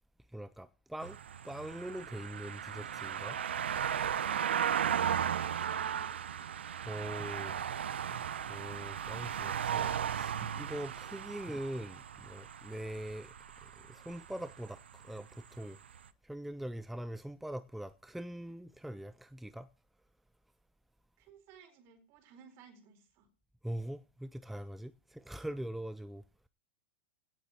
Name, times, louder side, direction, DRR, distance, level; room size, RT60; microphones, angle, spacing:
voice 1, 0.3-1.2 1.4-3.4 6.8-7.6 8.5-13.3 13.8-15.8 16.2-19.7 23.6-26.2, right 1 dB, ahead, 0.5 m, -42 dB
sound 1, 1.0-15.6 15.9-16.0, right 8 dB, 80° right, 0.8 m, -36 dB
voice 2, 5.6-6.1 21.2-23.3, right 7 dB, 45° right, 4.3 m, -57 dB
17.0 x 7.7 x 4.3 m
hypercardioid pair, 105°, 6 cm